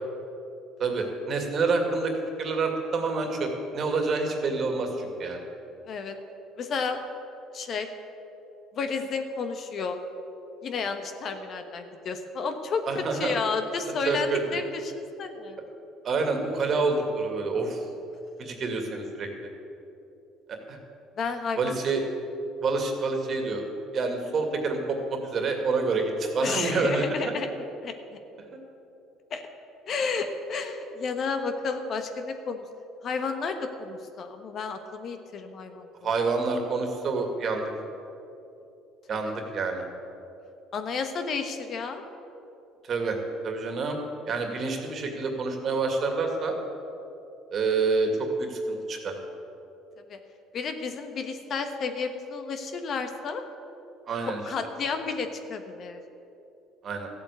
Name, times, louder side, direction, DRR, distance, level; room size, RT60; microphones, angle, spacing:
voice 1, 0.8-2.1 2.4-5.4 12.9-13.3 14.1-14.4 16.0-17.8 18.4-19.3 20.5-20.8 21.6-22.0 22.6-23.6 23.9-27.3 36.0-37.7 39.1-39.8 42.9-43.2 43.4-44.0 44.3-46.5 47.5-48.1 48.4-49.1 54.1-54.4 56.8-57.1, right 4 dB, 45° right, 3 dB, 2.3 m, -27 dB
voice 2, 6.6-7.0 7.5-7.9 8.7-10.0 10.6-15.6 21.2-21.8 26.4-27.5 27.8-27.9 29.3-29.4 29.9-32.6 33.0-35.9 39.1-39.3 40.7-42.0 50.1-50.2 50.5-53.4 54.5-56.0, left 5 dB, 45° left, 7 dB, 1.3 m, -31 dB
14.0 x 8.4 x 8.4 m, 2.8 s
cardioid pair, 110°, 0 cm